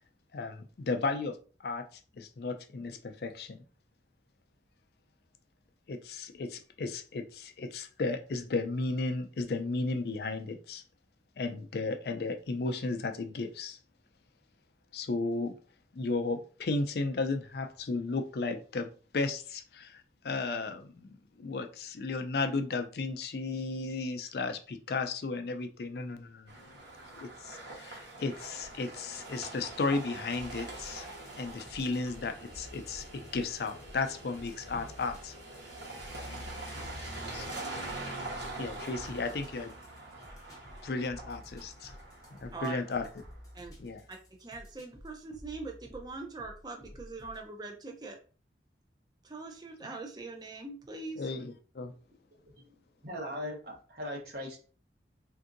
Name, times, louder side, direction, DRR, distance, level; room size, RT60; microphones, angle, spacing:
voice 1, 0.3-3.6 5.9-10.8 11.4-13.8 14.9-15.6 15.9-26.5 27.2-35.3 36.2-36.5 36.8-37.7 38.6-39.7 40.8-42.0 42.4-43.1 43.8-44.0 49.8-49.9 51.2-51.9, left 3 dB, 60° left, 6 dB, 0.4 m, -34 dB
sound 1, 26.5-43.4, right 2 dB, 75° right, 1.2 m, -44 dB
sound 2, 30.3-47.5, equal, 20° left, 0.7 m, -52 dB
voice 2, 42.5-42.8 43.5-43.8 44.1-48.2 49.2-51.2, right 3 dB, 25° right, 3 dB, 0.5 m, -42 dB
voice 3, 52.3-52.7 53.0-54.6, left 1 dB, 60° right, 0 dB, 1.0 m, -39 dB
3.5 x 2.6 x 2.5 m, 0.38 s
head